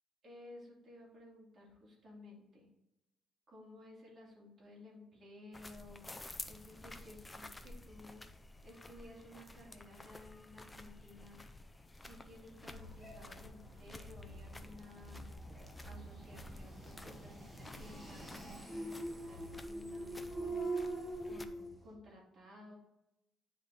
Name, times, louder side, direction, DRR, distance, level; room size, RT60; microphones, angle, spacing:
voice 1, 0.2-2.7 3.5-6.1 6.5-8.2 8.6-11.4 11.9-15.3 15.8-20.7 21.2-22.8, left 2 dB, 35° right, -4 dB, 2.6 m, -55 dB
sound 1, 5.5-21.5, left 2 dB, 10° left, 0.4 m, -52 dB
sound 2, 12.6-21.9, right 2 dB, 5° right, 1.3 m, -44 dB
9.6 x 4.0 x 3.5 m, 0.91 s
cardioid pair, 160°, 0 cm